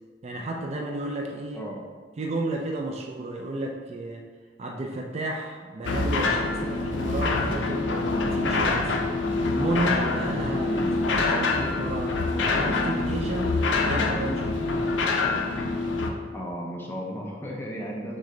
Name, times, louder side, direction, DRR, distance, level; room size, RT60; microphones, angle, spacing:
voice 1, 0.2-1.6 2.2-4.2 4.6-9.0 9.5-10.8 11.2-13.6 13.8-14.6, right 2 dB, 35° right, 1 dB, 0.4 m, -32 dB
voice 2, 1.5-1.8 10.6-10.9 13.8-14.0 16.3-18.2, equal, 10° left, -2 dB, 0.5 m, -35 dB
sound 1, 5.8-16.1, left 3 dB, 80° left, 0.5 m, -25 dB
6.3 x 2.2 x 3.8 m, 1.5 s
head